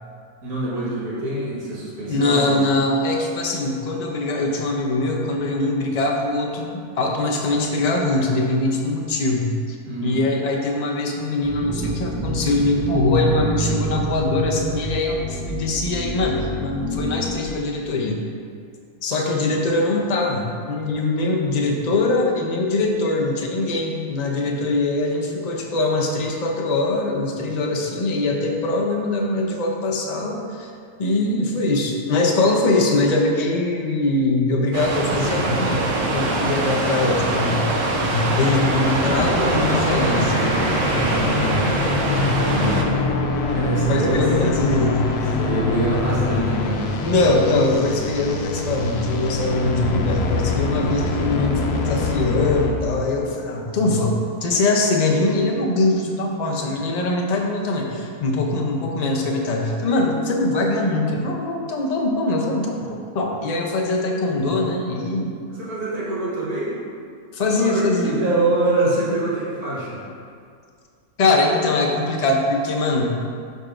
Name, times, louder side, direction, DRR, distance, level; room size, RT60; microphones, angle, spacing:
voice 1, 0.4-2.5 2.7-2.9 9.9-10.2 40.9-41.6 42.4-42.8 43.5-44.2 45.4-46.9 50.6-50.8 65.5-66.8 67.6-70.0, right 2 dB, 80° right, -6 dB, 1.9 m, -25 dB
voice 2, 2.1-9.8 10.0-18.2 19.0-30.7 31.0-35.9 36.1-37.6 38.0-40.6 42.2-42.3 43.9-45.1 47.0-65.3 67.3-68.2 71.2-73.2, left 2 dB, 65° left, 0 dB, 0.4 m, -22 dB
sound 1, 11.4-17.4, right 2 dB, 15° right, 1.0 m, -28 dB
sound 2, 34.7-42.8, right 2 dB, 60° right, 1.1 m, -23 dB
sound 3, 39.0-52.7, left 3 dB, 90° left, 1.2 m, -24 dB
11.5 x 3.9 x 2.5 m, 2.2 s
omnidirectional pair, 1.6 m